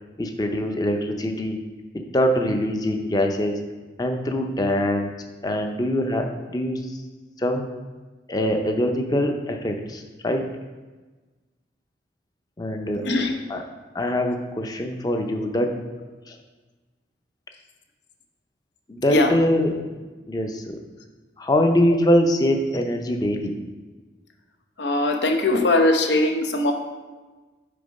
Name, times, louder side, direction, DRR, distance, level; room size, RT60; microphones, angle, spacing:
voice 1, 0.2-1.6 1.9-3.6 4.0-5.1 5.4-7.0 7.4-7.7 8.3-10.5 12.6-13.0 13.5-13.6 13.9-15.7 16.3-16.4 18.9-19.9 20.3-20.8 21.4-23.5, left 1 dB, 20° left, 4 dB, 0.6 m, -23 dB
voice 2, 24.8-26.7, left 2 dB, 80° left, 4 dB, 0.9 m, -20 dB
6.7 x 4.4 x 5.3 m, 1.3 s
head